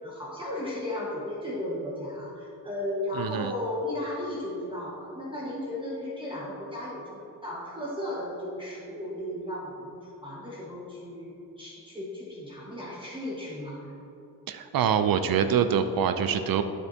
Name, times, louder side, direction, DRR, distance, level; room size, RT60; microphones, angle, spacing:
voice 1, 0.0-13.9, left 1 dB, 15° right, -6 dB, 1.4 m, -35 dB
voice 2, 3.1-3.5 14.5-16.6, right 8 dB, 70° right, 9 dB, 0.5 m, -25 dB
12.0 x 4.4 x 2.8 m, 3.0 s
cardioid pair, 65°, 36 cm